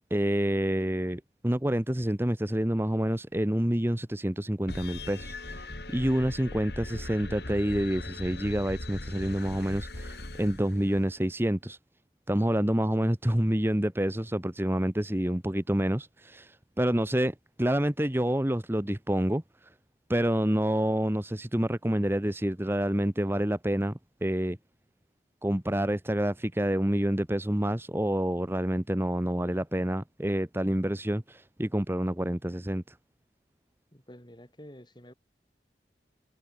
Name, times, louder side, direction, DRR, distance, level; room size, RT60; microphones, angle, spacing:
voice 1, 0.1-11.8 12.3-19.7 20.1-24.6 25.4-33.0, equal, 15° right, 1.0 m, -28 dB
sound 1, 4.7-11.3, left 2 dB, 60° left, 3.8 m, -40 dB
voice 2, 33.9-35.1, equal, 25° left, 6.0 m, -49 dB
head